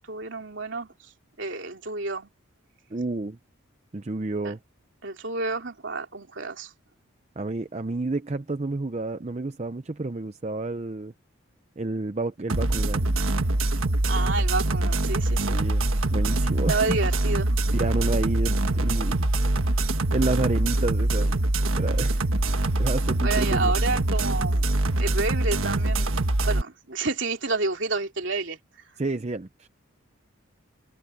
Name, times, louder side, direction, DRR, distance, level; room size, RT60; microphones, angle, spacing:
voice 1, 0.1-0.9 1.4-2.3 4.4-4.5 5.0-6.7 14.1-15.6 16.7-17.6 23.2-26.2 26.4-28.6, right 3 dB, 60° right, 3.3 m, -29 dB
voice 2, 2.9-3.4 3.9-4.6 7.4-11.1 11.8-13.1 15.5-17.0 17.7-19.3 20.1-21.3 21.8-22.2 22.8-23.7 29.0-29.7, right 2 dB, 30° right, 0.6 m, -30 dB
sound 1, 12.5-26.6, right 2 dB, 75° right, 1.4 m, -24 dB
head